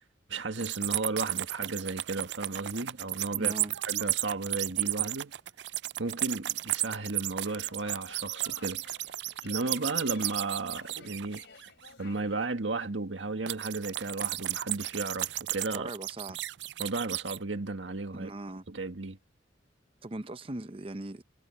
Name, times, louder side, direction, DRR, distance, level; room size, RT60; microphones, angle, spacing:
voice 1, 0.3-3.5 3.9-5.3 6.0-8.8 9.4-11.4 12.0-15.9 16.8-18.3 18.7-19.2, right 3 dB, 85° right, 1.9 m, -34 dB
sound 1, 0.6-11.9 13.5-17.4, right 16 dB, 65° right, 0.4 m, -33 dB
voice 2, 3.4-3.7 15.7-16.4 18.1-18.6 20.0-21.2, right 2 dB, 30° right, 0.7 m, -39 dB
sound 2, 7.5-12.5, left 4 dB, 75° left, 3.0 m, -53 dB
head